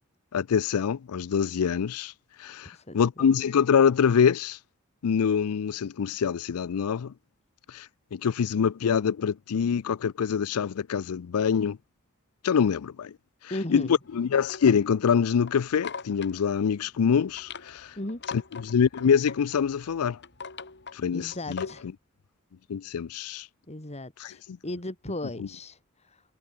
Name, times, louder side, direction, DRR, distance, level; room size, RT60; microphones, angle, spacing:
voice 1, 0.3-2.1 2.4-4.6 5.0-7.1 7.7-7.9 8.1-11.8 12.4-13.1 13.7-13.9 14.1-17.9 18.3-20.2 20.9-21.7 22.7-23.5 24.2-24.3 25.4-25.5, left 7 dB, 85° left, 0.4 m, -25 dB
voice 2, 13.5-14.0 18.0-18.2 21.1-21.9 23.7-26.2, left 1 dB, 30° left, 2.8 m, -36 dB
sound 1, 14.0-21.9, left 5 dB, 55° left, 3.2 m, -43 dB
head